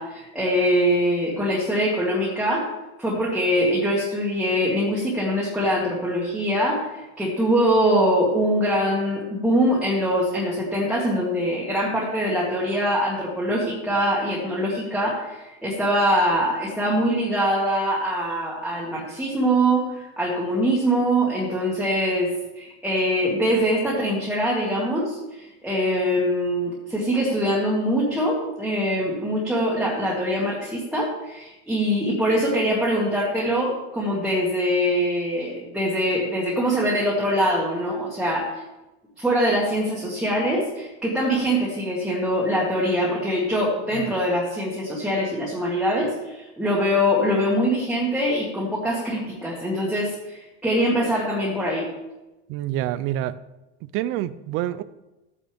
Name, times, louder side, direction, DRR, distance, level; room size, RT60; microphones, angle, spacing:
voice 1, 0.0-2.7 3.0-38.6 39.2-51.9, equal, ahead, -6 dB, 2.0 m, -23 dB
voice 2, 52.5-53.4 53.8-54.8, right 13 dB, 40° right, 15 dB, 0.5 m, -27 dB
14.0 x 9.4 x 3.5 m, 1.0 s
supercardioid pair, 160°, 35 cm